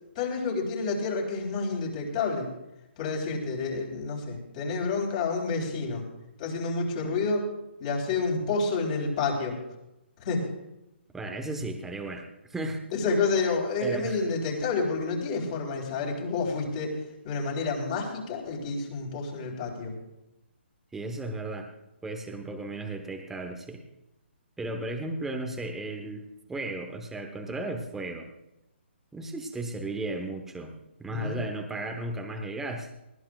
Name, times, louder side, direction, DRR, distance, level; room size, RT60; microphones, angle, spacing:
voice 1, 0.2-2.5 3.0-6.0 6.4-7.5 7.8-9.6 10.2-10.5 12.9-17.0 17.2-20.0 31.1-31.4, left 4 dB, 35° left, -1 dB, 3.7 m, -29 dB
voice 2, 11.1-12.8 13.8-14.2 20.9-21.7 22.0-23.8 24.6-28.3 29.1-32.9, right 2 dB, 5° right, 3 dB, 1.1 m, -35 dB
19.5 x 16.0 x 2.4 m, 0.91 s
hypercardioid pair, 155°, 6 cm